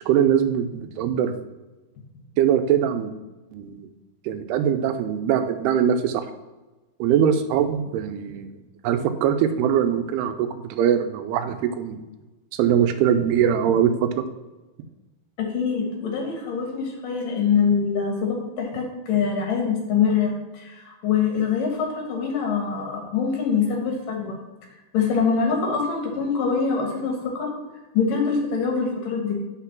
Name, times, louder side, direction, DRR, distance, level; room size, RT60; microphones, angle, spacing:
voice 1, 0.0-1.3 2.4-3.1 3.5-3.9 4.3-6.3 7.0-8.5 8.8-12.0 12.5-14.2, right 9 dB, 90° right, 8 dB, 2.7 m, -22 dB
voice 2, 15.4-24.4 24.9-27.5 27.9-29.4, left 6 dB, 65° left, 1 dB, 2.8 m, -24 dB
6.2 x 5.9 x 5.8 m, 1.1 s
omnidirectional pair, 4.6 m